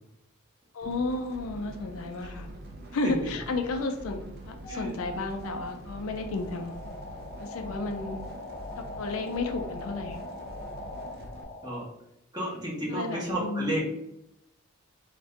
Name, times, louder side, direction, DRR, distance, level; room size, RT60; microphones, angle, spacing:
voice 1, 0.7-2.5 2.9-6.7 7.4-8.2 9.0-10.2 12.9-13.8, left 3 dB, 70° left, 5 dB, 0.4 m, -32 dB
sound 1, 0.8-11.4, right 1 dB, 45° right, 0.4 m, -44 dB
sound 2, 4.6-11.8, left 2 dB, 30° left, 0.6 m, -41 dB
voice 2, 12.3-13.8, right 1 dB, 20° right, -5 dB, 1.0 m, -32 dB
2.5 x 2.2 x 3.7 m, 0.81 s
head